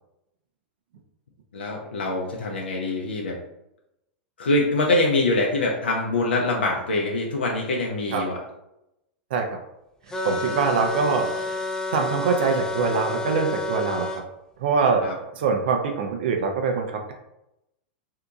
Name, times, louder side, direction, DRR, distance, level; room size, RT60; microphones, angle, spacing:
voice 1, 1.5-3.4 4.4-8.4 15.0-15.1, left 2 dB, 90° left, -1 dB, 0.5 m, -24 dB
sound 1, 10.1-14.2, left 3 dB, 10° left, 0.5 m, -30 dB
voice 2, 10.2-11.6 11.9-14.2 14.6-15.0 15.3-17.1, right 5 dB, 70° right, 3 dB, 0.6 m, -24 dB
2.8 x 2.3 x 3.8 m, 0.86 s
hypercardioid pair, 110°, 6 cm